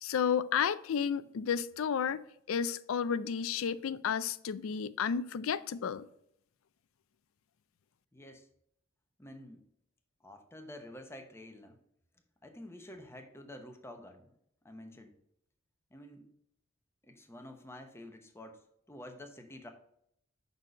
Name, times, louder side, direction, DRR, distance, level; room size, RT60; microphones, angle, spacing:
voice 1, 0.0-2.2 2.5-6.0, left 7 dB, 80° left, 0.4 m, -32 dB
voice 2, 8.1-8.5 9.2-9.6 10.2-11.8 12.4-14.3 14.6-15.1 15.9-16.3 17.0-18.6 18.9-19.7, left 1 dB, 15° left, 0.9 m, -49 dB
6.3 x 4.1 x 6.4 m
head